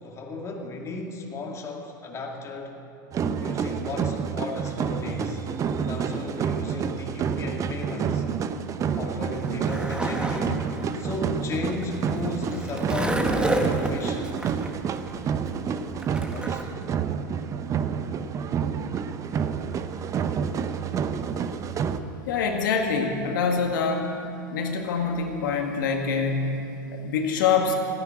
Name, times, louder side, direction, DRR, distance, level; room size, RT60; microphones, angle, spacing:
voice 1, 0.0-2.8 3.4-5.4 5.8-8.2 8.9-14.3 16.3-16.7, left 2 dB, 25° left, 1 dB, 2.2 m, -35 dB
sound 1, 3.1-22.0, right 7 dB, 30° right, 0.8 m, -29 dB
Skateboard, 9.2-16.6, right 1 dB, 10° right, 1.3 m, -30 dB
voice 2, 22.3-24.1 24.5-27.7, left 5 dB, 70° left, 2 dB, 1.8 m, -25 dB
15.5 x 10.0 x 8.9 m, 2.7 s
hypercardioid pair, 105°, 11 cm